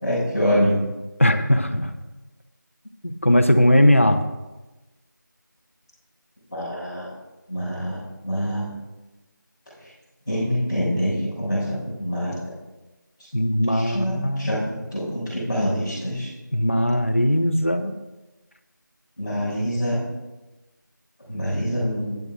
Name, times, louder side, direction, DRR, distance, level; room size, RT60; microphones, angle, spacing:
voice 1, 0.0-0.8 6.5-7.1 7.5-8.6 10.3-12.3 13.7-16.3 19.2-20.0 21.3-22.2, equal, 10° left, -17 dB, 3.9 m, -25 dB
voice 2, 1.2-1.9 3.0-4.2 13.3-14.6 16.5-17.9, equal, 40° left, 6 dB, 0.7 m, -19 dB
19.5 x 7.5 x 2.4 m, 1.1 s
figure-of-eight pair, 175°, 11 cm